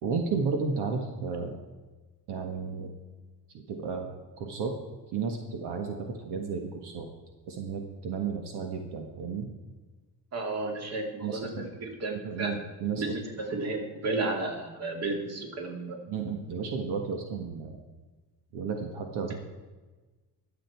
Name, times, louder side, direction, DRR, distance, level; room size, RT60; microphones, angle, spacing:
voice 1, 0.0-1.6 2.3-2.9 3.5-4.1 4.4-4.7 5.1-7.1 7.5-9.5 11.2-11.7 12.2-13.2 16.1-17.8 18.5-19.3, right 5 dB, 75° right, 3 dB, 1.7 m, -33 dB
voice 2, 10.3-11.5 11.8-12.5 13.0-16.0, right 3 dB, 40° right, 2 dB, 2.6 m, -32 dB
22.5 x 7.8 x 4.6 m, 1.2 s
cardioid pair, 140°, 40 cm